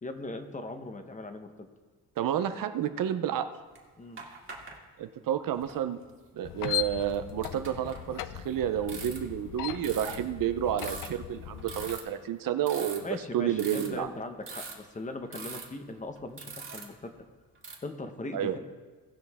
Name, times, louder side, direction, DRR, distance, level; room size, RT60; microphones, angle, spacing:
voice 1, 0.0-1.7 4.0-4.2 13.0-17.1 17.8-18.6, left 2 dB, 20° left, 6 dB, 1.0 m, -39 dB
voice 2, 2.2-3.5 5.0-6.0 6.4-13.1 13.3-14.1 18.3-18.6, right 10 dB, 60° right, 10 dB, 0.7 m, -30 dB
sound 1, 3.7-3.8 4.2-4.7 5.6-5.8 6.6-8.5 8.8-9.4 9.8-10.2 10.7-11.1 11.6-12.1 12.6-13.3 13.6-14.0 14.5-14.9 15.3-15.7 16.2-17.1 17.5-17.7, right 4 dB, 35° right, 2.1 m, -42 dB
sound 2, 6.4-12.0, left 13 dB, 60° left, 0.6 m, -38 dB
18.5 x 6.2 x 3.6 m, 1.4 s
cardioid pair, 125°, 38 cm